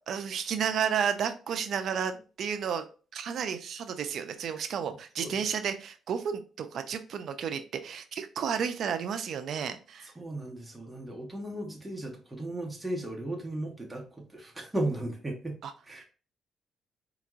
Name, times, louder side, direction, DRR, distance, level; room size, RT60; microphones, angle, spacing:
voice 1, 0.1-2.1 2.4-2.8 3.1-10.1 15.6-15.7, right 7 dB, 65° right, 9 dB, 0.5 m, -32 dB
voice 2, 10.1-15.6 15.9-16.0, right 1 dB, 15° right, 0 dB, 1.2 m, -36 dB
4.4 x 2.9 x 2.4 m, 0.36 s
cardioid pair, 90°, 0 cm